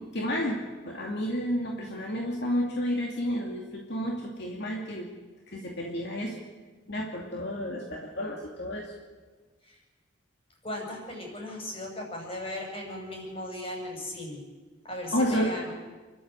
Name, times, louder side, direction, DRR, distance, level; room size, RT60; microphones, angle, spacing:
voice 1, 0.0-5.1 5.5-6.4 6.9-8.9 15.1-15.5, equal, 60° left, -1 dB, 2.6 m, -31 dB
voice 2, 10.6-14.4 14.8-15.7, left 1 dB, 30° left, 0 dB, 6.6 m, -37 dB
29.5 x 12.5 x 8.0 m, 1.3 s
head